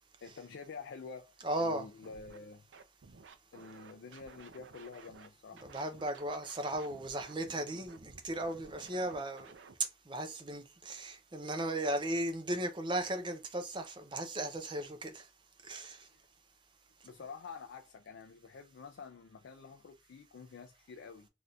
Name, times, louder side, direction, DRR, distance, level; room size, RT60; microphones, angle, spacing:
voice 1, 0.2-2.6 3.5-5.7 16.1-16.2 17.0-21.3, left 5 dB, 85° left, 0.4 m, -48 dB
voice 2, 1.4-1.9 5.7-9.5 10.1-15.2 15.7-16.0, right 1 dB, 25° right, 0.5 m, -36 dB
Scratching (performance technique), 2.0-2.4 2.7-5.3 5.6-9.7, right 4 dB, 90° right, 0.5 m, -55 dB
3.3 x 2.7 x 2.4 m
head